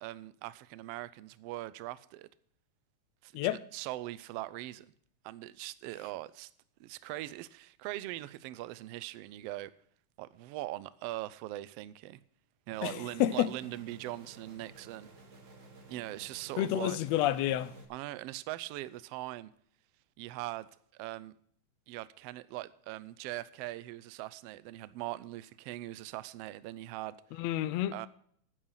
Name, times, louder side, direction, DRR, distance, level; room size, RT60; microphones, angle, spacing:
voice 1, 0.0-2.3 3.2-4.9 5.2-6.5 6.8-9.7 10.2-12.2 12.7-15.1 15.9-17.0 17.9-19.5 20.2-21.3 21.9-27.2 27.9-28.1, right 16 dB, 85° right, 1.4 m, -41 dB
sound 1, 12.7-17.8, right 3 dB, 35° right, 1.3 m, -53 dB
voice 2, 12.8-13.5 16.6-17.7 27.4-28.0, left 13 dB, 75° left, 1.6 m, -29 dB
10.0 x 9.7 x 5.7 m
omnidirectional pair, 3.4 m